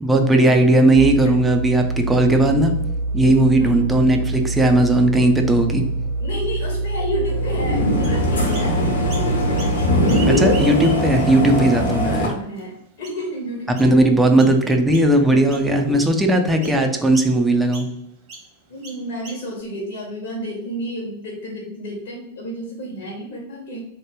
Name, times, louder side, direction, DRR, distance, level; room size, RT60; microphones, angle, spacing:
voice 1, 0.0-2.7 3.1-5.8 10.3-12.3 13.8-17.9, right 1 dB, 10° right, 4 dB, 0.5 m, -17 dB
sound 1, 1.0-10.3, right 2 dB, 60° right, 0.5 m, -25 dB
voice 2, 6.2-9.9 12.1-14.0 14.6-14.7 15.8-16.1 16.5-16.7 18.7-23.8, equal, 50° left, -4 dB, 0.9 m, -31 dB
sound 2, 7.2-12.3, left 1 dB, 70° left, 1.1 m, -21 dB
Chirp tweet, 8.0-8.7 9.1-9.8 10.0-11.2 11.8-11.9 12.6-12.7 13.0-13.3 13.7-13.9 14.4-14.6 14.9-15.2 15.5-16.2 16.6-16.8 17.1-17.3 17.7-17.9 18.3-18.5 18.8-19.6, right 4 dB, 40° right, 1.2 m, -38 dB
3.0 x 2.3 x 3.4 m, 0.78 s
figure-of-eight pair, 90°, 0 cm